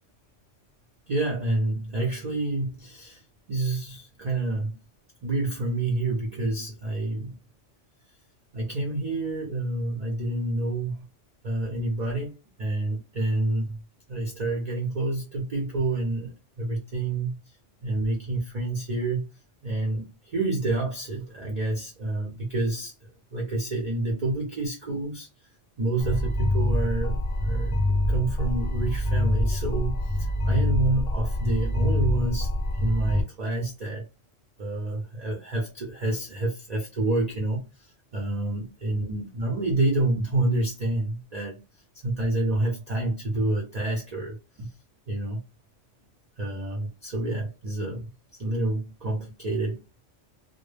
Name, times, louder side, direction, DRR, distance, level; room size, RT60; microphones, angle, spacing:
voice 1, 1.1-3.2 3.5-4.7 5.2-7.4 8.5-11.0 11.4-13.8 14.1-17.6 17.8-19.2 19.6-22.9 23.3-25.3 25.8-27.8 28.1-34.1 34.6-41.6 42.0-44.7 45.1-45.4 46.4-50.0, right 2 dB, 50° right, 0.5 m, -28 dB
sound 1, 26.0-33.2, left 1 dB, 70° left, 0.3 m, -25 dB
2.1 x 2.1 x 3.1 m
omnidirectional pair, 1.3 m